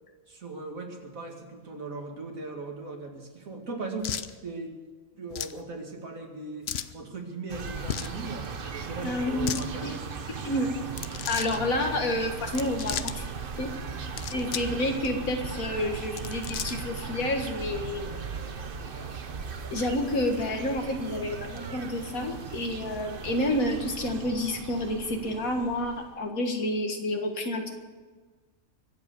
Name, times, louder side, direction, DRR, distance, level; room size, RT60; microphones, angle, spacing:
voice 1, 0.3-4.2 4.4-4.7 5.2-6.7 6.9-10.0, right 3 dB, 75° right, 2 dB, 2.8 m, -38 dB
sound 1, 4.0-4.3 5.3-5.6 6.7-6.9 7.8-8.2 9.3-9.7 10.9-11.6 12.4-13.2 14.0-14.7 15.0-15.1 16.0-16.9, left 9 dB, 55° left, 0.8 m, -35 dB
sound 2, 7.5-26.2, right 5 dB, 45° right, 1.0 m, -38 dB
voice 2, 9.0-10.0 10.4-10.7 11.3-13.3 13.6-13.7 14.3-18.1 19.7-27.7, left 1 dB, 90° left, 4 dB, 2.2 m, -29 dB
23.5 x 8.1 x 6.9 m, 1.4 s
omnidirectional pair, 1.4 m